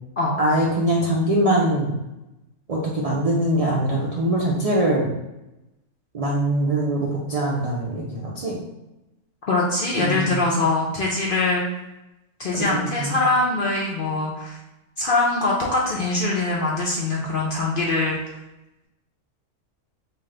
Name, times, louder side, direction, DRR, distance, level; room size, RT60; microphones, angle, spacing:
voice 1, 0.4-2.0 2.7-5.1 6.1-8.6 10.0-10.5 12.5-13.2, right 1 dB, 65° right, -4 dB, 0.3 m, -23 dB
voice 2, 9.5-11.6 12.4-14.6 15.0-18.2, left 2 dB, 60° left, -3 dB, 0.5 m, -23 dB
3.3 x 2.5 x 3.7 m, 0.97 s
omnidirectional pair, 1.4 m